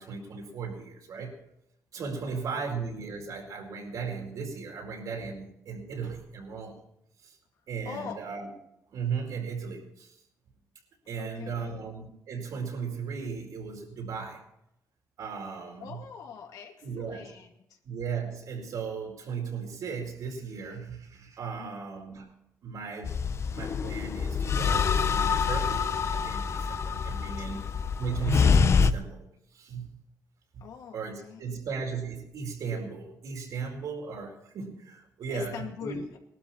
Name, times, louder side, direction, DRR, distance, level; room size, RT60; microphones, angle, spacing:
voice 1, 0.0-1.4 1.9-6.8 7.2-7.4 7.7-8.5 8.9-10.2 11.1-14.4 15.2-16.0 16.8-17.3 17.8-22.3 22.6-23.2 23.5-27.7 28.0-29.2 29.5-30.0 30.5-36.0, right 5 dB, 75° right, 1 dB, 4.6 m, -36 dB
voice 2, 7.8-8.2 11.2-11.8 15.8-17.5 21.6-21.8 27.4-27.7 30.6-31.6 35.3-36.2, left 7 dB, 80° left, 3 dB, 2.4 m, -43 dB
sound 1, 23.0-28.9, left 6 dB, 50° left, 0.7 m, -26 dB
20.0 x 12.5 x 4.5 m, 0.79 s
cardioid pair, 90°, 6 cm